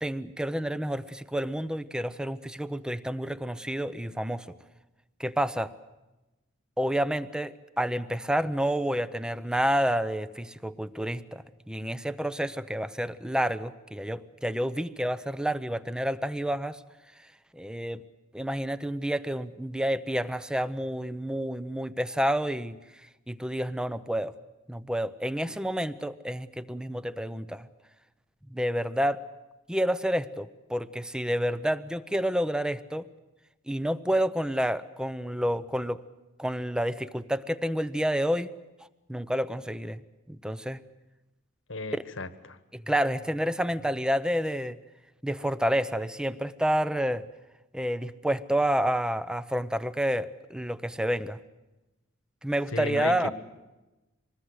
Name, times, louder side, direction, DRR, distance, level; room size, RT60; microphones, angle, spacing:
voice 1, 0.0-4.5 5.2-5.7 6.8-16.8 17.5-18.0 18.3-22.8 23.3-24.3 24.7-27.7 28.5-29.2 29.7-33.1 33.7-36.0 36.4-38.5 39.1-40.0 40.3-40.8 41.9-42.0 42.7-44.8 45.2-47.2 47.7-51.4 52.4-53.3, equal, 5° right, 15 dB, 0.7 m, -29 dB
voice 2, 41.7-42.6 52.7-53.3, left 2 dB, 70° left, 12 dB, 1.4 m, -34 dB
25.5 x 20.5 x 8.1 m, 1.1 s
head